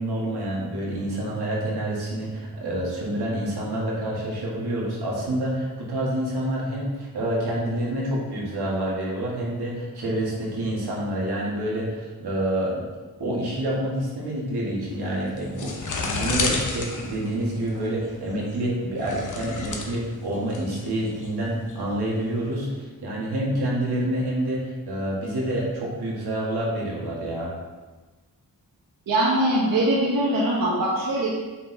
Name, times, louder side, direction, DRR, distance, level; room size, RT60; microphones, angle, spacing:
voice 1, 0.0-12.8 13.2-15.7 16.0-27.5, right 1 dB, 85° right, -4 dB, 2.0 m, -27 dB
sound 1, 14.9-22.6, left 3 dB, 50° left, 1.0 m, -32 dB
voice 2, 29.1-31.3, right 1 dB, 60° right, -5 dB, 1.2 m, -22 dB
8.3 x 4.5 x 3.4 m, 1.2 s
wide cardioid pair, 135°, 38 cm